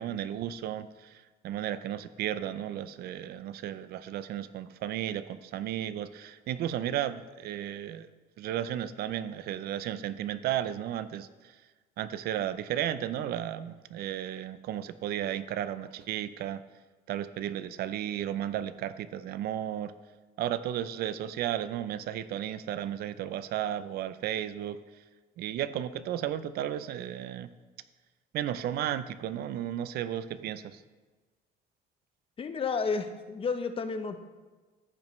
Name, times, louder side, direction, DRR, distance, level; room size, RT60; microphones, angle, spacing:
voice 1, 0.0-8.1 8.4-11.6 12.0-16.6 17.1-19.9 20.4-25.0 25.4-27.5 28.3-30.8, right 11 dB, 65° right, 14 dB, 0.5 m, -34 dB
voice 2, 32.4-34.2, left 5 dB, 35° left, 9 dB, 0.6 m, -31 dB
14.0 x 5.3 x 3.1 m, 1.3 s
cardioid pair, 110°, 17 cm